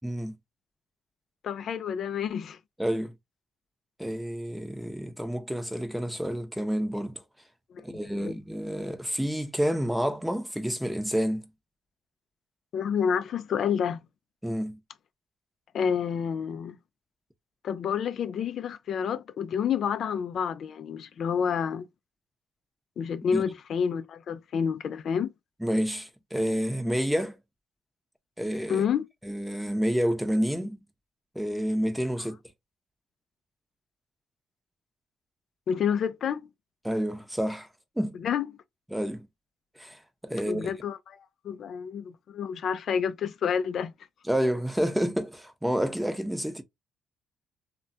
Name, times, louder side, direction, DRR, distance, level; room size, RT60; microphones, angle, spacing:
voice 1, 0.0-0.3 2.8-3.1 4.0-7.2 7.8-11.4 14.4-14.8 23.3-23.4 25.6-27.4 28.4-28.8 29.2-30.8 31.3-32.4 36.8-37.7 38.0-38.2 38.9-39.3 39.8-40.7 44.3-46.6, equal, 5° right, 0.7 m, -29 dB
voice 2, 1.4-2.6 7.7-8.4 12.7-14.0 15.7-16.8 17.6-21.9 23.0-25.3 28.7-29.1 35.7-36.5 38.2-38.5 40.4-41.2 41.4-43.9, left 7 dB, 65° left, 0.3 m, -29 dB
3.2 x 2.2 x 2.6 m
cardioid pair, 90°, 0 cm